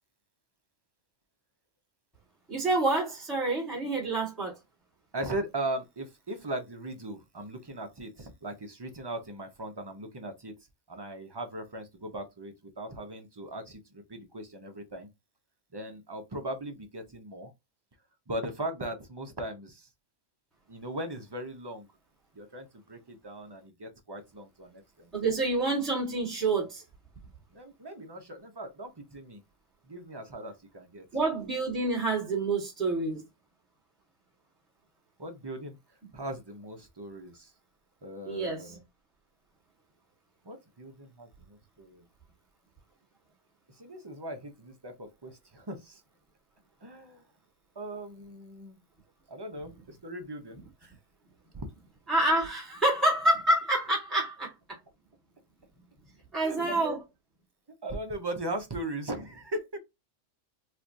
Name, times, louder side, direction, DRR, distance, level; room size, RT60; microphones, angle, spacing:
voice 1, 2.5-4.6 25.1-26.8 31.1-33.2 38.3-38.7 52.1-54.8 56.3-57.0, right 2 dB, ahead, 1.3 m, -27 dB
voice 2, 5.1-10.5 10.9-15.1 15.7-17.5 18.3-19.9 20.7-21.9 22.3-25.1 27.5-29.4 29.8-31.1 35.2-35.8 36.1-37.5 38.0-38.8 40.4-42.1 43.7-46.0 46.8-47.2 47.8-48.8 49.3-50.9 51.5-51.7 56.4-57.0 57.8-59.8, right 1 dB, 25° right, 0.5 m, -39 dB
4.4 x 2.4 x 2.5 m
omnidirectional pair, 1.4 m